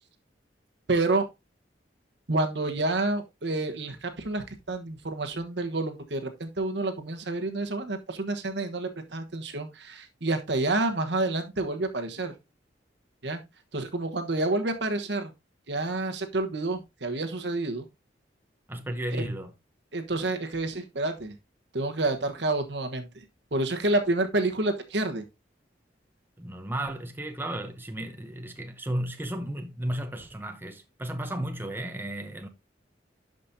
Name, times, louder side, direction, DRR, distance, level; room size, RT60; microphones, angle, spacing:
voice 1, 0.9-1.3 2.3-12.3 13.2-13.4 13.7-15.3 15.7-17.8 19.2-19.3 19.9-21.3 21.7-23.1 23.5-25.2, right 2 dB, 65° right, 1.2 m, -29 dB
voice 2, 18.7-19.5 26.4-32.5, right 1 dB, 10° right, 0.8 m, -34 dB
11.5 x 5.2 x 2.7 m
head